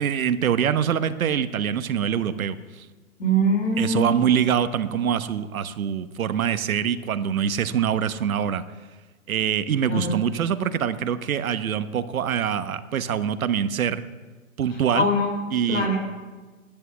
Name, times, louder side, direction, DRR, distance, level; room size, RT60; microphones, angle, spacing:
voice 1, 0.0-2.9 3.8-8.6 9.3-14.0 14.6-15.1 15.5-15.9, right 8 dB, 75° right, 13 dB, 1.1 m, -24 dB
voice 2, 3.2-4.1 9.9-10.2 14.9-15.3 15.7-16.0, right 1 dB, 65° left, 2 dB, 4.8 m, -22 dB
11.5 x 10.5 x 7.2 m, 1.3 s
hypercardioid pair, 155°, 42 cm